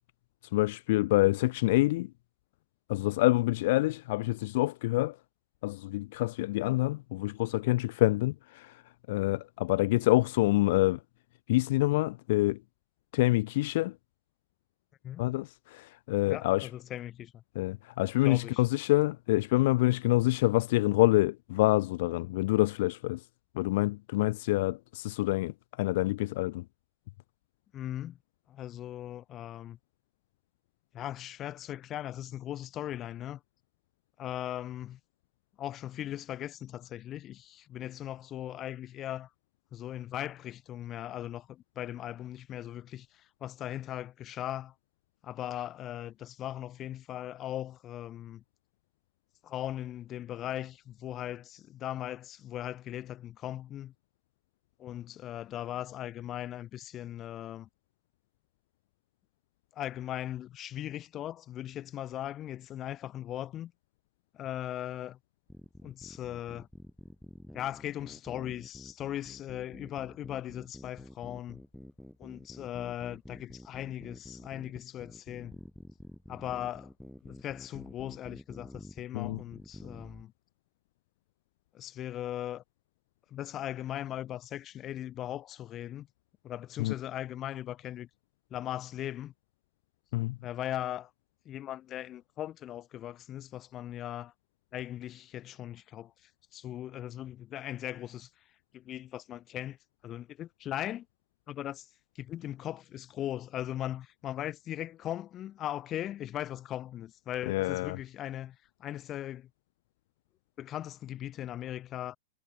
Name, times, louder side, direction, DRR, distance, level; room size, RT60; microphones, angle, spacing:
voice 1, 0.5-2.1 2.9-5.2 5.6-8.8 9.1-11.0 11.5-12.6 13.1-13.9 15.2-16.7 17.6-23.3 23.5-26.6 79.1-79.4 86.8-86.9 90.1-90.4 107.5-108.0, left 19 dB, 50° left, 0.4 m, -27 dB
voice 2, 16.3-17.4 18.2-18.6 27.7-28.2 28.5-29.8 30.9-33.4 34.2-35.0 35.6-39.3 39.7-44.7 45.2-48.4 49.4-53.9 54.8-57.7 59.7-63.7 64.3-65.2 65.8-66.7 67.5-71.6 72.2-75.6 76.3-76.9 77.2-80.3 81.7-82.6 83.3-86.1 86.4-88.1 88.5-89.3 90.4-91.1 91.5-94.3 94.7-98.3 98.7-99.8 100.0-101.1 101.5-101.9 102.2-109.5 110.6-112.2, left 12 dB, 30° left, 1.8 m, -39 dB
sound 1, 65.5-80.2, left 1 dB, ahead, 3.1 m, -49 dB
figure-of-eight pair, 100°, 0 cm